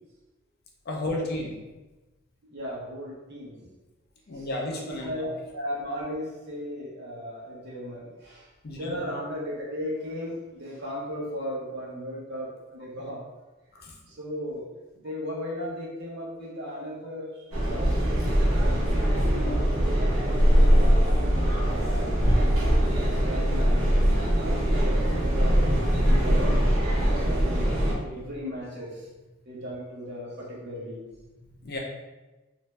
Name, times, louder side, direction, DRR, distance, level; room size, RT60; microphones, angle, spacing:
voice 1, 0.9-1.6 4.3-5.4 8.6-9.0 13.8-14.0 31.4-31.8, left 1 dB, 50° left, -1 dB, 0.5 m, -33 dB
voice 2, 2.5-3.6 4.3-4.5 4.7-13.2 14.1-14.7 14.9-18.2 18.6-22.2 22.9-24.0 24.4-27.7 28.0-29.1 29.5-31.0, equal, 55° right, -4 dB, 0.8 m, -37 dB
sound 1, 17.5-27.9, equal, 85° right, 0.9 m, -22 dB
2.5 x 2.2 x 3.1 m, 1.1 s
head